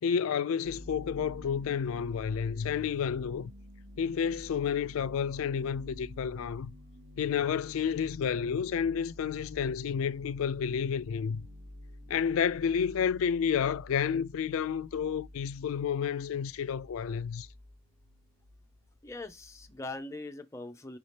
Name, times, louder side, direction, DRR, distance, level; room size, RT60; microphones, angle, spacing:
voice 1, 0.0-3.5 4.0-6.7 7.2-11.5 12.1-17.5, left 7 dB, 80° left, 0.3 m, -30 dB
sound 1, 0.6-20.0, left 1 dB, 70° right, 2.1 m, -50 dB
voice 2, 19.0-21.0, left 2 dB, 15° left, 0.5 m, -41 dB
5.7 x 2.7 x 3.2 m
head